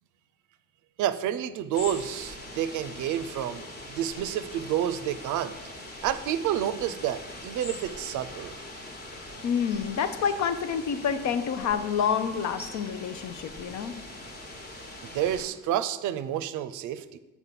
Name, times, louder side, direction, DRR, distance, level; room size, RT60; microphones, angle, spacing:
voice 1, 1.0-5.6 6.0-8.5 15.0-17.2, right 10 dB, 80° right, 12 dB, 0.5 m, -29 dB
sound 1, 1.7-15.5, left 1 dB, 30° left, 1.3 m, -42 dB
voice 2, 9.4-14.0, left 7 dB, 65° left, 10 dB, 0.7 m, -28 dB
6.9 x 4.2 x 5.8 m, 1.1 s
cardioid pair, 90°, 30 cm